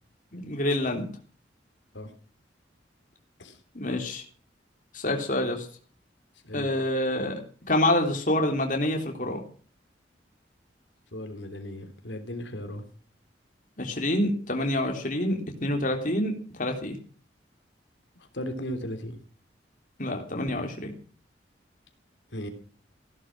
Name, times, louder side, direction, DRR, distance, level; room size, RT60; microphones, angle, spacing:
voice 1, 0.3-1.1 3.8-4.2 4.9-5.7 6.5-7.4 7.7-9.4 13.8-16.3 16.6-17.0 20.0-20.9, left 1 dB, 45° left, 3 dB, 3.5 m, -27 dB
voice 2, 11.1-12.8 18.3-19.2 22.3-22.5, equal, 85° left, 6 dB, 3.3 m, -36 dB
16.5 x 12.0 x 6.2 m, 0.43 s
head